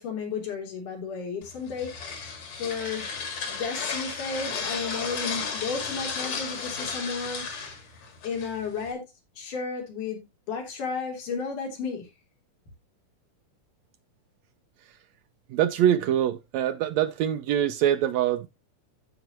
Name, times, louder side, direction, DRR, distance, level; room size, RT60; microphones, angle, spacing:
voice 1, 0.0-2.0 2.6-3.1 3.5-7.5 8.2-9.0 9.4-12.1, left 5 dB, 80° left, 4.8 m, -33 dB
sound 1, 1.4-8.9, left 5 dB, 60° left, 3.5 m, -34 dB
voice 2, 15.5-18.5, right 10 dB, 75° right, 1.8 m, -24 dB
14.5 x 5.8 x 3.0 m
omnidirectional pair, 3.6 m